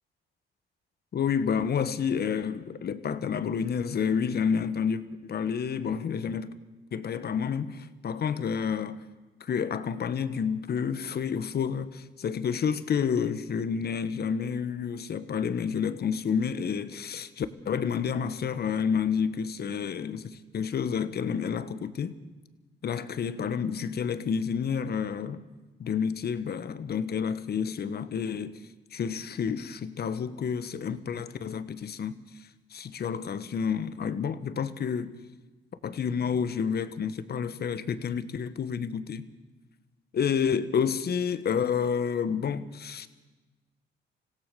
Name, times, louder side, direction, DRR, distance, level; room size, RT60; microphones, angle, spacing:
voice 1, 1.1-6.5 6.9-9.0 9.4-22.1 22.8-25.4 25.8-28.6 28.9-35.1 35.8-39.2 40.1-43.1, left 7 dB, 55° left, 1.4 m, -29 dB
27.0 x 16.5 x 7.0 m
cardioid pair, 90°, 20 cm